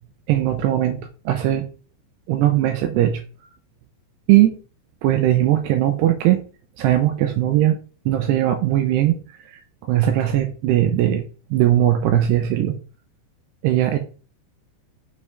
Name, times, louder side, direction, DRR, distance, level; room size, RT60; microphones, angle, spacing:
voice 1, 0.3-1.7 2.3-3.2 4.3-4.5 5.0-6.4 6.8-7.8 8.1-9.2 9.5-9.6 9.9-11.2 11.5-12.8 13.6-14.0, right 13 dB, 80° right, 6 dB, 2.5 m, -19 dB
6.8 x 5.3 x 3.2 m, 0.37 s
omnidirectional pair, 5.3 m